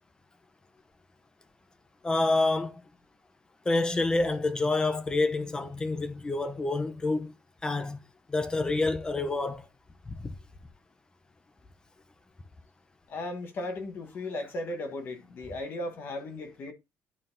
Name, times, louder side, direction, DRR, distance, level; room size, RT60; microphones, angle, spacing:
voice 1, 2.0-2.8 3.7-7.3 7.6-8.0 8.3-9.7 10.1-10.3, left 2 dB, 15° left, 0.6 m, -28 dB
voice 2, 13.1-16.7, left 2 dB, 40° left, 1.2 m, -36 dB
11.0 x 3.9 x 2.6 m
cardioid pair, 170°, 5 cm